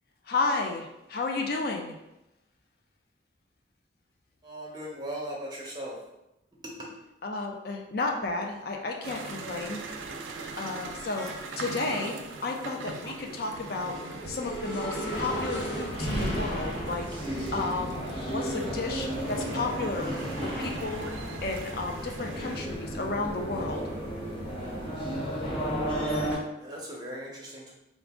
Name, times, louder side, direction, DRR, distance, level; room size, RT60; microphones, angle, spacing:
voice 1, 0.3-2.0 7.2-9.8 10.6-12.2 12.4-14.0 14.3-17.1 17.5-18.0 18.3-20.1 20.4-21.1 21.4-23.9, left 3 dB, 50° left, 2 dB, 0.4 m, -32 dB
voice 2, 4.4-6.0 6.6-6.9 26.6-27.7, equal, 20° right, -3 dB, 0.8 m, -38 dB
sound 1, 8.6-8.7 9.0-20.3 20.7-22.4, right 1 dB, 75° left, 1.2 m, -41 dB
sound 2, 9.0-22.6, right 3 dB, 85° right, 0.4 m, -42 dB
sound 3, 15.1-26.4, equal, 30° left, 0.9 m, -33 dB
4.0 x 2.5 x 3.5 m, 0.89 s
head